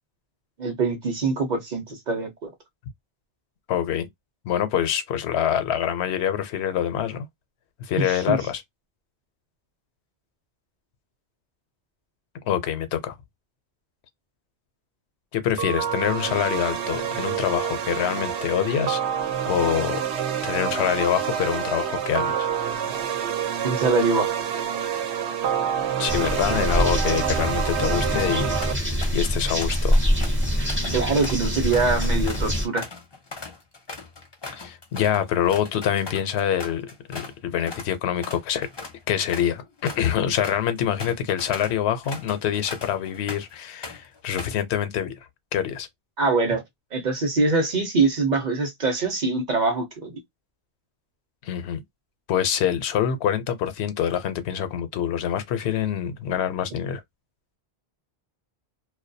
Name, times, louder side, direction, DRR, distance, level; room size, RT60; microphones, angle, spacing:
voice 1, 0.6-2.5 8.0-8.4 23.6-24.3 30.9-32.9 46.2-46.6 46.9-50.1, right 3 dB, 50° right, 0.7 m, -23 dB
voice 2, 3.7-4.1 4.4-7.3 7.8-8.6 12.5-13.1 15.3-19.0 19.5-20.0 20.4-22.5 26.0-28.5 29.1-30.0 34.6-38.7 39.1-45.1 45.5-45.9 51.4-51.8 52.3-57.0, left 9 dB, 85° left, 0.8 m, -25 dB
sound 1, 15.6-28.7, right 8 dB, 85° right, 0.8 m, -27 dB
sound 2, 26.1-32.7, equal, 15° right, 0.5 m, -24 dB
sound 3, 28.2-28.3 28.6-29.3 29.6-37.4 37.7-37.9 38.2-43.5 43.8-44.6, left 3 dB, 35° left, 0.5 m, -39 dB
2.2 x 2.1 x 2.6 m
omnidirectional pair, 1.1 m